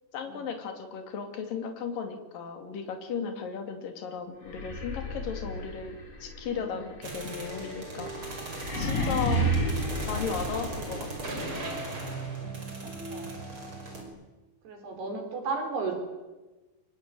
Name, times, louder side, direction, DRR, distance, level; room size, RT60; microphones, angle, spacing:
voice 1, 0.1-8.4 8.8-9.5 10.1-11.4, left 6 dB, 55° left, 6 dB, 4.2 m, -36 dB
sound 1, 4.4-11.3, right 1 dB, 35° left, 5.5 m, -32 dB
sound 2, 7.0-14.0, right 2 dB, 30° right, 5.9 m, -37 dB
voice 2, 8.7-9.1 11.8-11.9 12.3-12.7 13.1-13.3 14.6-15.9, right 4 dB, 65° right, 4 dB, 6.3 m, -35 dB
25.0 x 22.0 x 9.2 m, 1.2 s
omnidirectional pair, 5.1 m